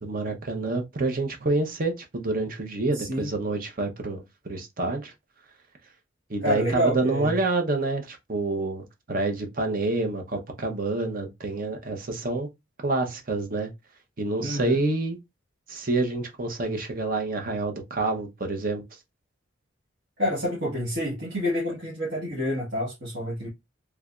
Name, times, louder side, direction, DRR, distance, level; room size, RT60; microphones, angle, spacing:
voice 1, 0.0-5.1 6.3-12.5 12.8-13.7 14.2-15.2 15.7-18.8, right 2 dB, 45° right, 0.8 m, -28 dB
voice 2, 2.9-3.3 6.4-7.4 14.4-14.8 20.2-23.5, left 1 dB, 60° right, 1.4 m, -28 dB
3.4 x 3.2 x 2.4 m
head